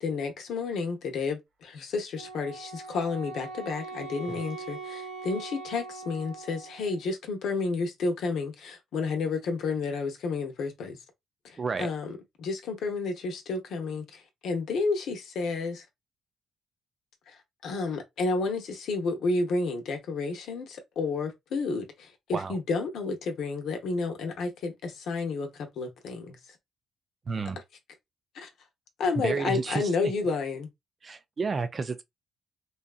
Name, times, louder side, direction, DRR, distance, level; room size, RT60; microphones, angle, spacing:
voice 1, 0.0-11.0 11.8-15.8 17.3-17.4 17.6-26.4 28.3-28.5 29.0-30.7, left 4 dB, 75° left, 0.8 m, -31 dB
Wind instrument woodwind instrument, 2.2-7.0, right 4 dB, 65° right, 1.0 m, -41 dB
voice 2, 11.6-11.9 22.3-22.6 27.3-27.6 29.2-30.1 31.0-32.0, right 4 dB, 40° right, 0.4 m, -31 dB
2.7 x 2.4 x 2.3 m
cardioid pair, 90°, 0 cm